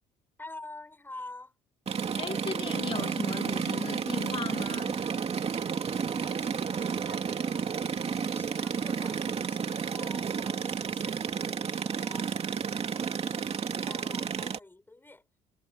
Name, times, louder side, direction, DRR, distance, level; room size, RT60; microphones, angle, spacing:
voice 1, 0.4-1.5 6.0-15.3, left 2 dB, 10° left, 7.2 m, -49 dB
sound 1, 1.9-14.6, right 6 dB, 35° right, 2.7 m, -31 dB
voice 2, 2.2-5.0, left 5 dB, 30° left, 1.5 m, -37 dB
cardioid pair, 110°, 17 cm